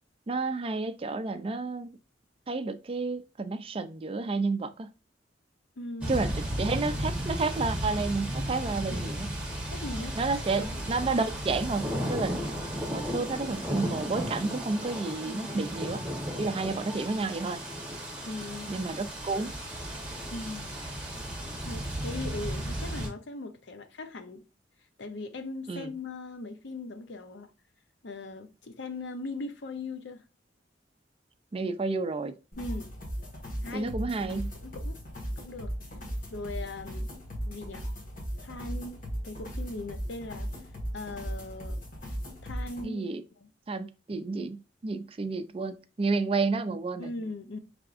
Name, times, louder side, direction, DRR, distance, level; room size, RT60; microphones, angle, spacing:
voice 1, 0.3-2.0 2.5-4.9 6.1-9.3 10.2-12.4 12.9-16.0 16.4-17.6 18.7-19.5 25.7-25.9 31.5-32.3 33.7-34.5 42.8-43.2 43.7-47.1, right 3 dB, 30° right, 0.4 m, -31 dB
voice 2, 5.8-6.1 8.9-9.2 9.7-10.2 10.6-10.8 15.3-15.6 18.2-18.8 20.3-20.8 21.7-24.4 25.0-27.5 28.0-30.2 32.6-32.9 33.6-33.9 34.6-35.0 35.4-35.7 36.3-37.1 37.5-37.9 38.4-40.5 40.9-41.8 42.4-43.0 43.4-43.5 47.0-47.6, left 2 dB, 70° left, 0.7 m, -39 dB
sound 1, 6.0-23.1, equal, 5° right, 1.1 m, -34 dB
sound 2, 32.5-42.8, equal, 45° left, 1.6 m, -37 dB
5.9 x 3.4 x 2.5 m
head